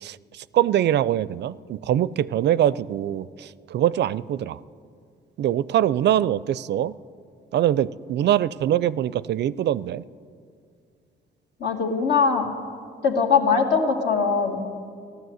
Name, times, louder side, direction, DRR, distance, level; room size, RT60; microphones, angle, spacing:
voice 1, 0.0-4.6 5.4-6.9 7.5-10.0, right 11 dB, 60° right, 18 dB, 0.4 m, -23 dB
voice 2, 11.6-12.5 13.0-14.6, left 5 dB, 60° left, 1 dB, 2.3 m, -21 dB
14.5 x 12.0 x 7.9 m, 2.3 s
cardioid pair, 90°, 20 cm